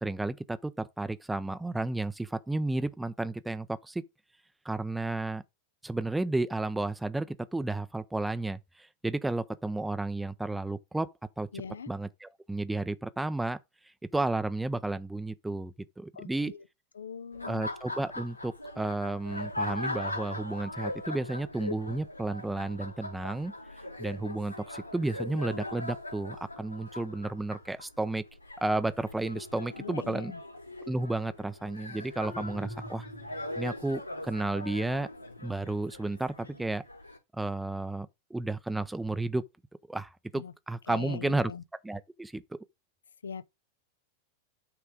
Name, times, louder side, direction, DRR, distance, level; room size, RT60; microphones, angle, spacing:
voice 1, 0.0-4.0 4.6-5.4 5.8-11.1 11.4-11.5 11.9-13.6 14.1-16.5 17.4-23.5 24.0-28.2 28.6-30.3 30.9-33.0 33.6-35.1 35.4-36.8 37.3-39.4 39.9-41.5 41.8-42.6, right 2 dB, 5° right, 0.5 m, -32 dB
voice 2, 11.5-11.9 16.1-16.6 16.9-17.7 29.8-30.4 40.3-40.5 40.9-41.6 43.2-43.4, left 6 dB, 70° left, 0.5 m, -41 dB
Laughter, 17.3-37.2, left 1 dB, 90° left, 5.1 m, -41 dB
sound 1, 32.2-33.7, left 1 dB, 20° left, 1.2 m, -44 dB
8.9 x 3.4 x 5.0 m
figure-of-eight pair, 90°, 0 cm